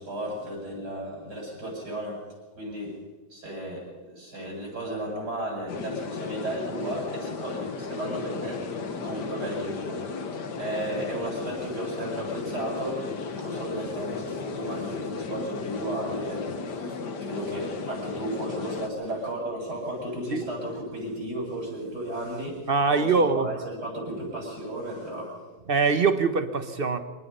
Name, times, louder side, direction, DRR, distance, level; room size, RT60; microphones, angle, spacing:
voice 1, 0.0-2.2 2.6-3.0 3.3-10.0 10.6-25.4, right 1 dB, 75° right, -1 dB, 8.8 m, -34 dB
sound 1, 5.7-18.9, left 5 dB, 80° left, 2.1 m, -35 dB
voice 2, 22.7-23.5 25.7-27.0, right 4 dB, 35° right, 9 dB, 1.2 m, -23 dB
25.5 x 19.5 x 5.6 m, 1.3 s
omnidirectional pair, 1.8 m